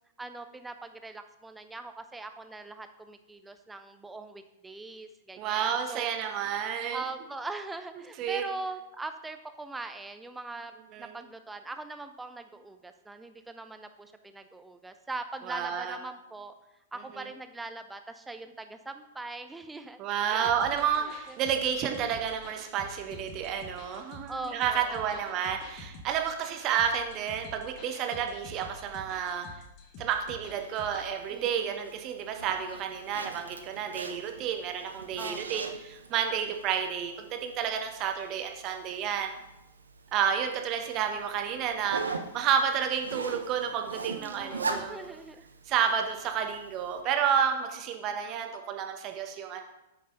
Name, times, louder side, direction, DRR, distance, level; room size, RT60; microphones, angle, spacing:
voice 1, 0.2-6.1 6.9-10.7 11.0-16.5 16.9-20.0 20.3-21.4 24.3-25.4 31.3-31.7 35.2-35.7 44.2-45.5, right 3 dB, 10° right, 8 dB, 0.6 m, -41 dB
voice 2, 5.4-7.0 8.2-8.4 10.9-11.1 15.4-16.0 17.1-17.3 20.0-29.5 30.0-39.3 40.1-45.2 45.7-49.6, right 8 dB, 35° right, 4 dB, 1.1 m, -30 dB
sound 1, 20.4-31.1, left 2 dB, 35° left, 1.3 m, -48 dB
Zipper (clothing), 30.5-47.0, right 4 dB, 75° right, 0.7 m, -41 dB
9.4 x 5.4 x 3.9 m, 0.94 s
figure-of-eight pair, 100°, 0 cm